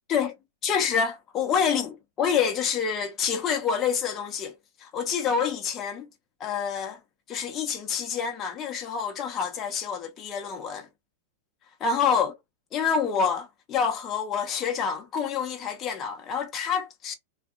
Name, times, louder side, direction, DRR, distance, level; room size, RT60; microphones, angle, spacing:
voice 1, 0.6-4.5 4.8-6.1 6.4-7.0 7.3-10.9 11.8-12.3 12.7-17.1, left 6 dB, 25° left, 0.7 m, -27 dB
2.7 x 2.2 x 2.4 m
supercardioid pair, 145°, 0 cm